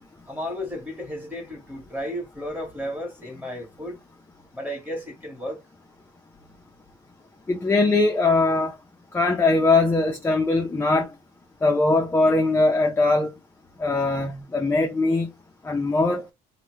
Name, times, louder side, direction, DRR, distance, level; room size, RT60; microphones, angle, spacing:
voice 1, 0.3-4.0 4.5-5.6, equal, 10° right, 1.2 m, -33 dB
voice 2, 7.5-8.7 9.1-11.1 11.6-13.3 13.8-15.3 15.6-16.2, left 3 dB, 15° left, 0.4 m, -21 dB
2.8 x 2.1 x 3.1 m
cardioid pair, 110°, 17 cm